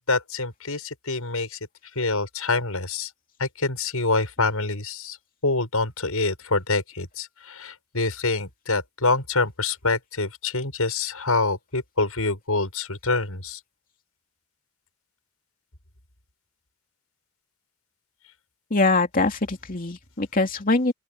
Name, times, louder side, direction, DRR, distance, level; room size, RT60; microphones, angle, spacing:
voice 1, 0.1-1.6 1.9-3.1 3.4-5.2 5.4-13.6, left 3 dB, 80° left, 6.5 m, -26 dB
voice 2, 18.7-20.9, left 3 dB, 40° left, 2.7 m, -23 dB
open air
head